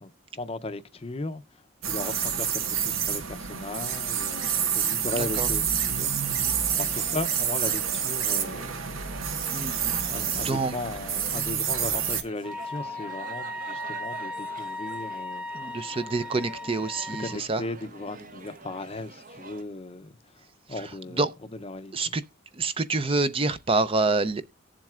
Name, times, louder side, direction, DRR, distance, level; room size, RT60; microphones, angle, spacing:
voice 1, 0.0-1.4 1.8-16.0 17.0-20.4 20.7-21.2 21.5-22.2, left 2 dB, 30° left, 0.6 m, -37 dB
sound 1, 1.8-12.2, right 7 dB, 90° right, 1.1 m, -28 dB
sound 2, 6.4-19.6, right 4 dB, 45° right, 0.8 m, -46 dB
voice 2, 9.5-10.0 10.4-10.7 15.5-17.6 21.2-21.3 21.9-22.2 22.6-24.4, right 3 dB, 25° right, 0.5 m, -26 dB
Wind instrument woodwind instrument, 12.4-17.4, left 1 dB, 5° right, 1.0 m, -37 dB
18.0 x 7.5 x 2.4 m
head